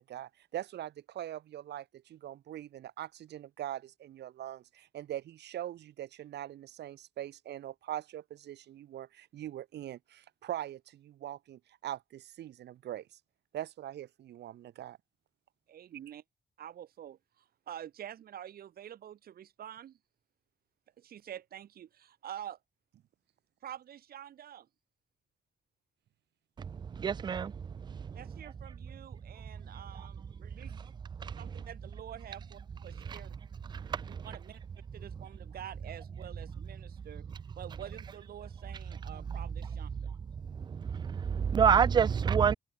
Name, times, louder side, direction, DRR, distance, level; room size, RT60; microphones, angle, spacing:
voice 1, 0.0-13.1 13.5-15.0, right 12 dB, 85° right, 2.7 m, -42 dB
voice 2, 15.7-16.2 16.6-20.0 21.0-22.6 23.6-24.7 28.1-30.7 31.4-33.3 34.1-34.6 34.9-37.3 37.6-40.1, right 10 dB, 60° right, 3.9 m, -47 dB
voice 3, 26.7-27.5 27.9-28.1 31.2-31.4 33.1-33.2 33.7-34.3 40.7-42.5, right 7 dB, 25° right, 0.4 m, -28 dB
wide cardioid pair, 175°, 17 cm